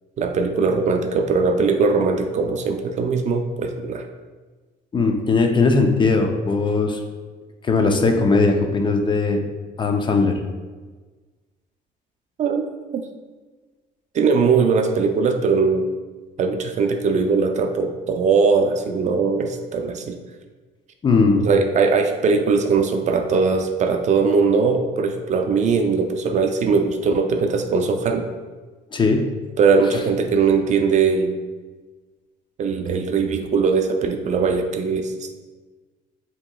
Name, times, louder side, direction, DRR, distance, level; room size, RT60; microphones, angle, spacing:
voice 1, 0.2-4.0 12.4-12.6 12.9-13.0 14.1-15.9 16.4-20.2 21.3-28.3 29.6-31.4 32.6-35.4, right 4 dB, 45° right, 5 dB, 0.4 m, -20 dB
voice 2, 4.9-7.0 7.6-9.4 9.8-10.4 21.0-21.4 28.9-29.2, left 3 dB, 30° left, 4 dB, 0.5 m, -19 dB
7.2 x 2.9 x 2.3 m, 1.3 s
cardioid pair, 110°, 17 cm